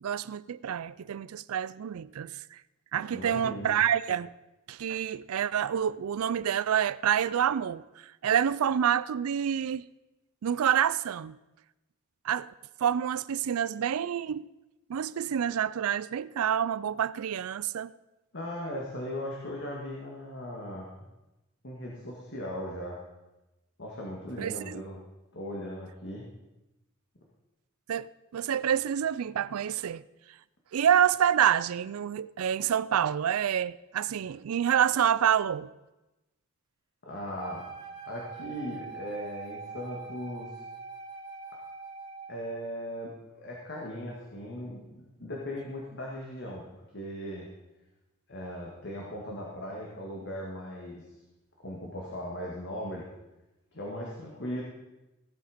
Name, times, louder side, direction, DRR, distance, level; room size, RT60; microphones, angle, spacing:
voice 1, 0.0-2.6 2.9-4.3 4.7-9.9 10.4-11.4 12.2-12.5 12.8-14.5 14.9-17.9 24.4-24.8 27.9-30.0 30.7-35.7, right 9 dB, 90° right, 0.4 m, -27 dB
voice 2, 3.1-3.8 18.3-21.1 21.6-23.0 23.8-25.0 25.3-26.2 37.0-37.6 38.1-40.6 42.3-47.5 48.3-51.0 51.6-53.1 53.7-54.6, equal, 55° left, 2.0 m, -38 dB
Wind instrument woodwind instrument, 37.4-42.4, right 4 dB, 20° right, 2.0 m, -43 dB
16.5 x 8.0 x 5.1 m
head